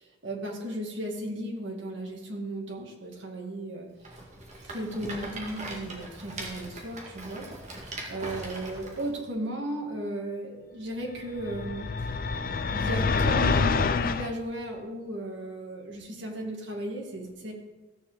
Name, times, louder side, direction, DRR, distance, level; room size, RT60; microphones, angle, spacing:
voice 1, 0.2-3.9 4.6-7.8 8.1-11.9 12.7-17.5, right 1 dB, 60° right, -1 dB, 2.2 m, -35 dB
Rattle, 4.0-9.1, right 2 dB, 35° right, 2.0 m, -40 dB
sound 1, 11.4-14.3, left 4 dB, 40° left, 0.4 m, -26 dB
16.0 x 7.2 x 4.0 m, 1.2 s
head